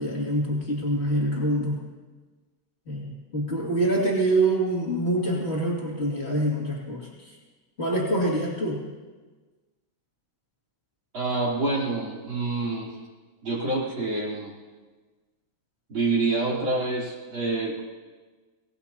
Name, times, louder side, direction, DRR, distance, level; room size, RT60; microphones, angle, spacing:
voice 1, 0.0-1.8 2.8-7.3 7.8-8.8, right 1 dB, 90° left, -4 dB, 0.5 m, -25 dB
voice 2, 11.1-12.9 13.4-14.5 15.9-17.8, right 3 dB, 25° right, -5 dB, 3.5 m, -27 dB
24.5 x 18.5 x 2.9 m, 1.3 s
omnidirectional pair, 5.8 m